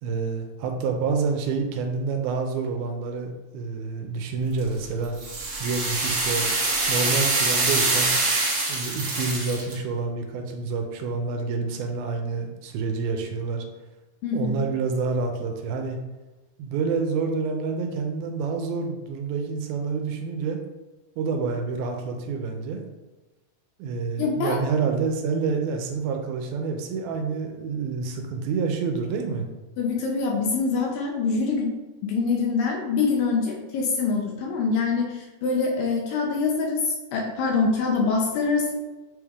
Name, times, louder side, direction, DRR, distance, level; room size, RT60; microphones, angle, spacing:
voice 1, 0.0-5.2 5.6-6.5 6.9-8.2 8.7-13.7 14.3-16.0 16.6-20.6 21.2-22.8 23.8-29.5, right 4 dB, 80° right, 4 dB, 2.4 m, -28 dB
sound 1, 4.6-9.7, right 2 dB, 60° right, 1.2 m, -24 dB
voice 2, 14.2-14.7 24.2-24.6 29.8-31.7 32.0-38.8, left 4 dB, 75° left, 0 dB, 2.2 m, -25 dB
7.8 x 3.4 x 3.5 m, 1.1 s
omnidirectional pair, 4.4 m